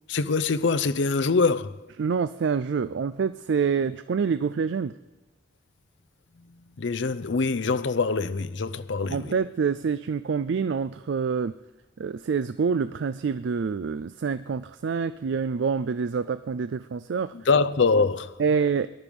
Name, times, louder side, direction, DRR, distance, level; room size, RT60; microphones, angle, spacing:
voice 1, 0.1-1.9 6.5-9.3 17.3-18.4, left 4 dB, 75° left, 0.6 m, -24 dB
voice 2, 2.0-4.9 9.1-11.5 12.0-17.3 18.4-18.9, right 6 dB, 70° right, 0.4 m, -26 dB
18.0 x 12.0 x 5.3 m
head